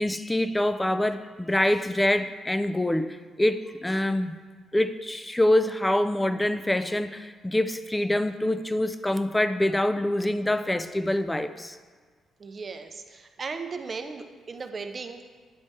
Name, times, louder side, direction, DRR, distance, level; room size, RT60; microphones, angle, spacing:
voice 1, 0.0-4.4 4.7-11.8, left 1 dB, 10° left, 10 dB, 0.3 m, -25 dB
voice 2, 12.4-15.2, right 4 dB, 40° right, 7 dB, 0.5 m, -37 dB
8.6 x 3.2 x 4.4 m, 1.5 s
cardioid pair, 90°, 0 cm